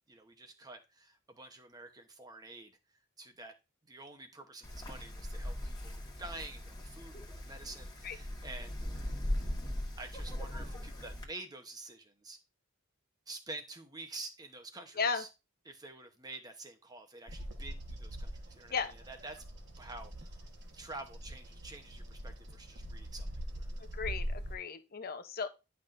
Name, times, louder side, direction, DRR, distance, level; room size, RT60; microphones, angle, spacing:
voice 1, 0.1-2.7 3.2-3.5 3.9-8.8 10.0-12.4 13.3-15.3 15.6-19.4 19.8-20.4 20.7-23.8, right 2 dB, 20° right, 0.9 m, -48 dB
Wind, 4.6-11.2, left 1 dB, 20° left, 1.5 m, -39 dB
Bird vocalization bird call bird song, 17.3-24.5, equal, 55° right, 1.3 m, -43 dB
voice 2, 23.9-25.5, left 5 dB, 45° left, 0.8 m, -35 dB
10.5 x 5.8 x 2.6 m
head